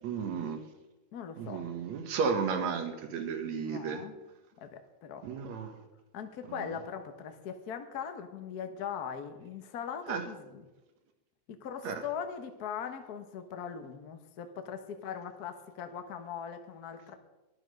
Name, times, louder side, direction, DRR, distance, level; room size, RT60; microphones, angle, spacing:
voice 1, 0.0-0.6 1.4-4.0 5.2-5.8 10.1-10.2 11.8-12.0, right 5 dB, 70° right, 7 dB, 2.4 m, -33 dB
voice 2, 1.1-1.6 3.6-4.2 4.6-5.3 6.1-10.6 11.5-17.1, left 7 dB, 75° left, 7 dB, 0.8 m, -40 dB
12.5 x 11.5 x 5.3 m, 1.1 s
omnidirectional pair, 3.5 m